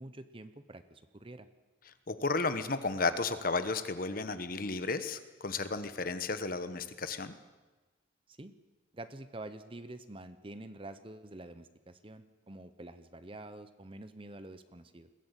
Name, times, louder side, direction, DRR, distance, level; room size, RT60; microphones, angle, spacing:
voice 1, 0.0-1.5 8.3-8.5 8.9-15.1, right 2 dB, 25° right, 11 dB, 0.9 m, -47 dB
voice 2, 2.1-7.3, left 3 dB, 45° left, 11 dB, 1.2 m, -33 dB
22.0 x 15.0 x 8.2 m, 1.2 s
head